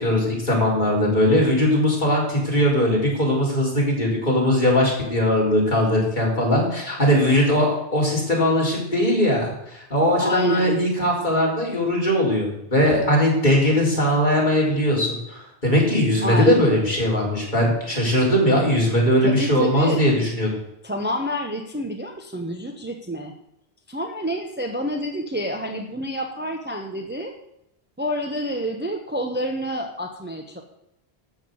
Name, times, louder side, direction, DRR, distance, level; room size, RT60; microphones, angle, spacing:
voice 1, 0.0-20.5, equal, 45° left, -3 dB, 4.2 m, -20 dB
voice 2, 10.2-10.8 16.2-16.7 19.2-20.1 20.8-23.3 23.9-27.3 28.0-30.6, equal, 10° right, 3 dB, 1.0 m, -28 dB
13.0 x 6.1 x 7.8 m, 0.83 s
omnidirectional pair, 1.1 m